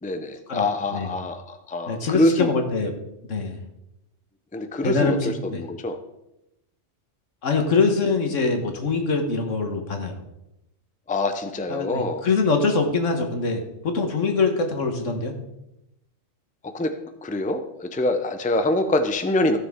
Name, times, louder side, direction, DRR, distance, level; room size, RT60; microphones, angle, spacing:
voice 1, 0.0-2.5 4.5-6.0 11.1-12.2 16.6-19.6, left 2 dB, 10° left, 8 dB, 0.5 m, -25 dB
voice 2, 1.9-2.9 3.3-3.6 4.8-5.6 7.4-10.2 11.7-15.3, left 4 dB, 85° left, 4 dB, 1.7 m, -23 dB
15.0 x 6.6 x 3.7 m, 0.89 s
omnidirectional pair, 1.3 m